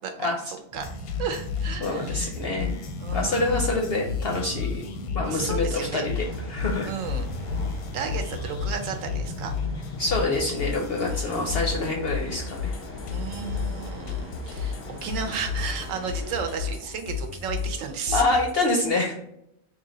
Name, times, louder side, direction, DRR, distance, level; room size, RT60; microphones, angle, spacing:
sound 1, 0.7-10.4, equal, 35° right, 0.5 m, -38 dB
sound 2, 0.8-18.5, left 6 dB, 85° left, 1.0 m, -33 dB
voice 1, 1.2-2.3 3.0-3.6 5.3-6.1 6.8-7.3 7.7-9.5 11.1-11.7 13.1-18.2, right 6 dB, 70° right, 5 dB, 0.9 m, -33 dB
voice 2, 1.8-2.8 3.1-4.8 5.1-6.9 10.0-12.7 18.1-19.1, left 2 dB, 60° left, 1 dB, 0.6 m, -26 dB
sound 3, 6.1-16.8, left 1 dB, 15° left, 0.5 m, -41 dB
3.2 x 2.8 x 3.8 m, 0.76 s
omnidirectional pair, 1.5 m